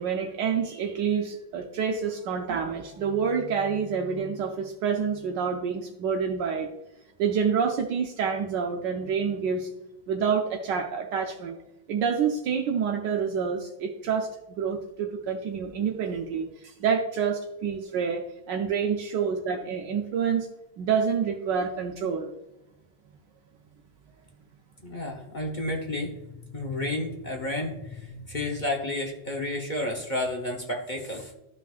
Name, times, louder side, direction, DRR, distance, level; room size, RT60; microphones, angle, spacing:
voice 1, 0.0-6.7 7.2-9.7 10.1-11.6 11.9-18.2 18.5-20.5 20.8-22.3, right 6 dB, 75° right, 3 dB, 1.3 m, -28 dB
voice 2, 24.8-31.3, left 1 dB, 35° left, 0 dB, 0.8 m, -31 dB
12.0 x 5.8 x 2.4 m, 0.93 s
omnidirectional pair, 2.0 m